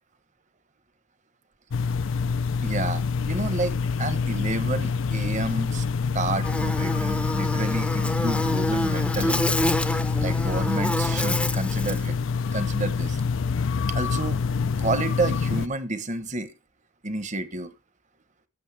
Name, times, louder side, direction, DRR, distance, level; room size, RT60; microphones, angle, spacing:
sound 1, 1.7-15.7, left 5 dB, 80° left, 0.5 m, -26 dB
voice 1, 2.6-5.8 6.1-9.5 9.9-12.2 12.5-13.2 13.9-14.4 14.8-16.5 17.0-17.7, right 2 dB, 40° right, 1.1 m, -30 dB
Buzz, 6.4-12.1, left 1 dB, 5° left, 0.6 m, -28 dB
15.0 x 7.0 x 3.3 m
head